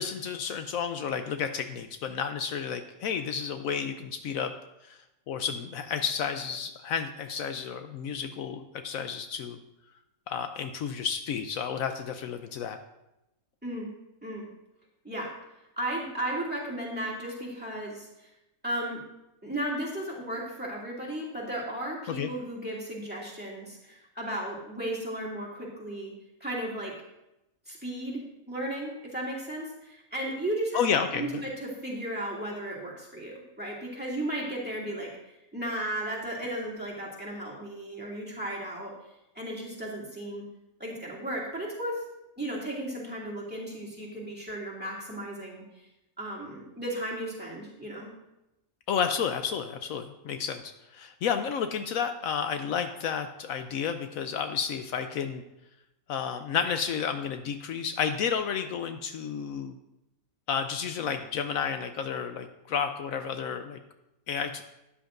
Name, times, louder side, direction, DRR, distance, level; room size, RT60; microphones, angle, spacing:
voice 1, 0.0-4.5 4.8-5.0 5.3-9.6 10.3-12.8 22.2-22.3 30.7-31.4 48.9-55.4 56.1-59.7 60.5-63.8 64.3-64.6, left 7 dB, 75° left, 7 dB, 1.0 m, -31 dB
voice 2, 15.8-18.3 18.6-19.0 19.4-26.1 26.4-27.0 27.7-30.8 31.1-35.1 35.5-38.9 39.3-40.5 40.8-42.0 42.4-45.9 46.2-48.1, right 1 dB, 5° right, -4 dB, 2.4 m, -35 dB
13.0 x 10.0 x 2.6 m, 0.90 s
omnidirectional pair, 1.5 m